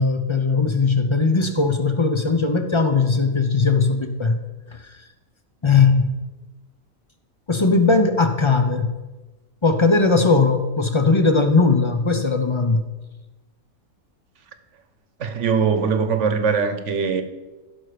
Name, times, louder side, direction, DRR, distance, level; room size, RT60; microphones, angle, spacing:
voice 1, 0.0-4.4 4.7-4.8 5.6-6.1 7.5-9.0 9.6-12.9, left 4 dB, 35° left, 7 dB, 0.5 m, -19 dB
voice 2, 15.2-17.2, right 6 dB, 60° right, 9 dB, 1.2 m, -21 dB
15.5 x 6.2 x 5.0 m, 1.2 s
omnidirectional pair, 1.5 m